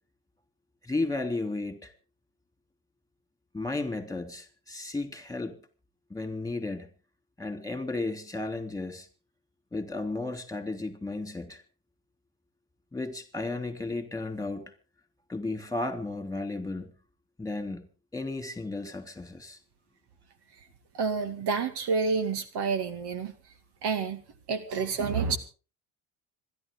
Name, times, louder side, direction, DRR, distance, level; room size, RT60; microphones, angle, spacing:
voice 1, 0.8-1.9 3.5-5.6 6.1-6.9 7.4-9.1 9.7-11.6 12.9-14.7 15.3-16.9 17.4-17.9 18.1-19.6, left 2 dB, 5° left, 3.4 m, -34 dB
voice 2, 20.9-23.3 23.8-24.2 24.5-25.4, right 5 dB, 60° right, 2.2 m, -29 dB
26.0 x 11.5 x 3.8 m
hypercardioid pair, 65°, 46 cm